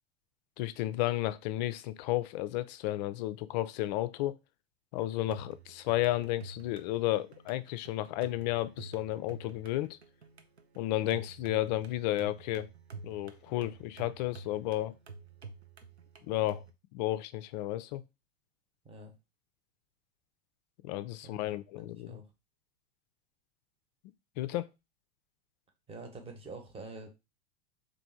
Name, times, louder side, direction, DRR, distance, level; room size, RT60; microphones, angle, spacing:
voice 1, 0.6-4.4 4.9-10.0 10.8-12.7 13.0-14.9 16.3-16.6 16.9-18.0 20.8-22.2 24.4-24.7, left 15 dB, 45° left, 0.4 m, -32 dB
sound 1, 5.2-16.7, right 4 dB, 85° right, 0.6 m, -49 dB
voice 2, 21.2-22.3 25.9-27.2, right 3 dB, 20° right, 1.0 m, -47 dB
3.4 x 2.6 x 4.2 m
figure-of-eight pair, 85°, 32 cm